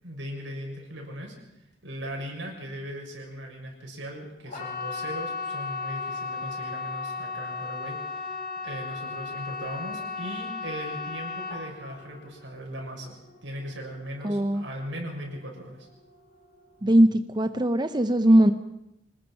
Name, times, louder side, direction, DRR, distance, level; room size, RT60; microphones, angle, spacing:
voice 1, 0.0-1.3 1.8-15.9, equal, 85° right, 0 dB, 6.6 m, -38 dB
sound 1, 4.4-15.3 15.6-16.2 16.5-16.6, left 4 dB, 45° left, 4.4 m, -35 dB
voice 2, 14.2-14.6 16.8-18.5, right 1 dB, 25° right, 10 dB, 0.8 m, -20 dB
26.0 x 19.5 x 5.8 m, 0.86 s
head